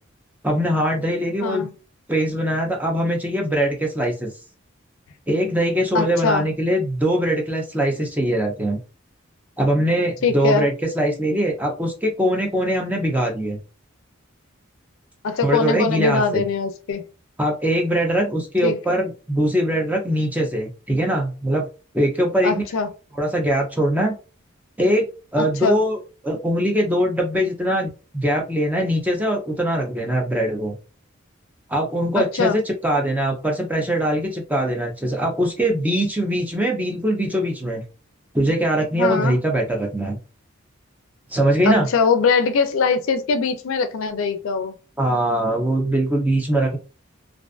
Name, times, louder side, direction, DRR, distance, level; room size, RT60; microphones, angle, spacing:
voice 1, 0.4-1.7 2.1-4.3 5.3-8.8 9.6-13.6 15.4-16.4 17.4-21.7 21.9-22.6 23.2-24.2 24.8-25.1 25.3-26.0 26.2-30.7 31.7-37.8 38.3-40.2 41.3-41.9 45.0-46.8, right 1 dB, 10° right, 0.4 m, -22 dB
voice 2, 5.9-6.5 10.2-10.7 15.2-17.0 18.6-19.0 22.4-22.9 25.4-25.8 32.2-32.6 39.0-39.4 41.7-44.7, left 5 dB, 75° left, 0.4 m, -22 dB
2.5 x 2.3 x 2.3 m
head